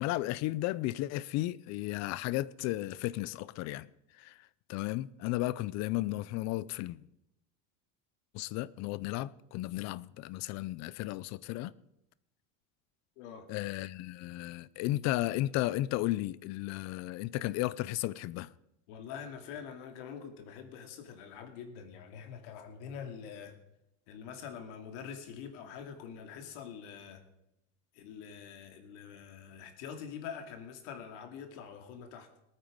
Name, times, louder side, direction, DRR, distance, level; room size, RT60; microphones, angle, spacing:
voice 1, 0.0-3.9 4.2-4.3 4.7-7.0 8.3-11.7 13.5-18.5, left 16 dB, 50° left, 0.5 m, -34 dB
voice 2, 13.2-13.5 18.9-23.5 24.1-27.2 27.9-32.3, left 7 dB, 80° left, 2.5 m, -45 dB
19.0 x 9.1 x 5.2 m
cardioid pair, 150°, 35 cm